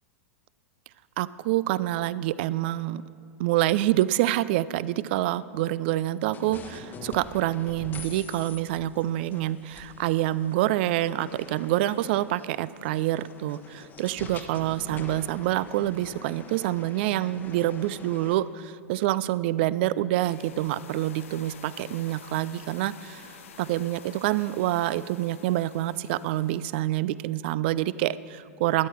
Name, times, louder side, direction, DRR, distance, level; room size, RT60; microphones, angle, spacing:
voice 1, 1.2-3.0 3.4-23.3 23.6-28.9, right 14 dB, 45° right, 18 dB, 0.4 m, -27 dB
sound 1, 6.3-18.3, left 4 dB, 25° left, 1.0 m, -45 dB
sound 2, 20.2-26.8, left 7 dB, 60° left, 0.8 m, -49 dB
13.0 x 10.5 x 4.4 m, 2.8 s
figure-of-eight pair, 95°, 8 cm